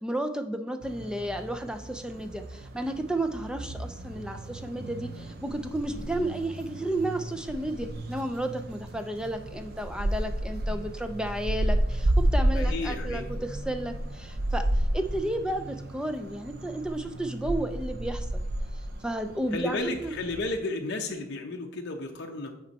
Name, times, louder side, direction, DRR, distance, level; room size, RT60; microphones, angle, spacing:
voice 1, 0.0-18.4 19.0-20.1, right 1 dB, 5° right, 7 dB, 0.3 m, -32 dB
sound 1, 0.8-20.6, right 1 dB, 45° right, 0.6 m, -32 dB
voice 2, 12.5-13.3 19.5-22.5, left 2 dB, 50° left, 2 dB, 0.6 m, -33 dB
8.8 x 4.3 x 4.1 m, 0.87 s
head